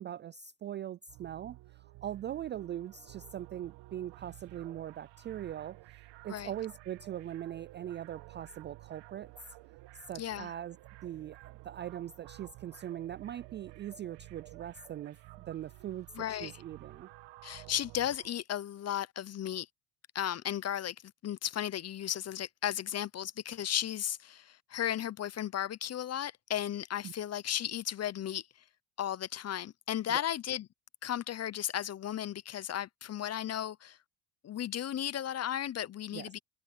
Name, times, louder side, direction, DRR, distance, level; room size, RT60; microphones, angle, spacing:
voice 1, 0.0-9.3 9.9-10.8 11.0-15.2 15.5-17.1 27.0-27.1 30.1-30.2 36.1-36.3, right 11 dB, 25° right, 0.3 m, -41 dB
sound 1, 1.1-18.3, right 19 dB, 60° right, 1.4 m, -53 dB
voice 2, 10.2-10.5 16.2-16.6 17.4-19.7 20.1-21.0 21.2-28.5 29.0-30.7 31.0-34.0 34.4-36.4, left 10 dB, 30° left, 0.8 m, -35 dB
supercardioid pair, 90°, 50 cm